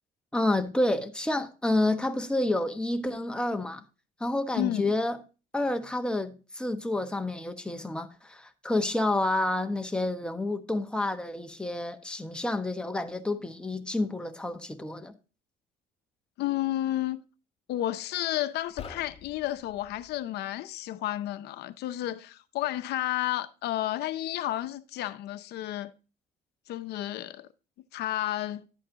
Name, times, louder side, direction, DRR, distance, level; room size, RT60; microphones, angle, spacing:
voice 1, 0.3-3.8 4.2-5.2 5.5-15.1, left 2 dB, 5° left, 1.2 m, -29 dB
voice 2, 4.6-4.9 16.4-17.2 17.7-25.9 26.7-27.5 27.9-28.7, left 14 dB, 75° left, 0.7 m, -31 dB
sound 1, 18.6-20.2, left 6 dB, 35° left, 1.4 m, -46 dB
11.5 x 8.6 x 2.9 m
cardioid pair, 110°, 17 cm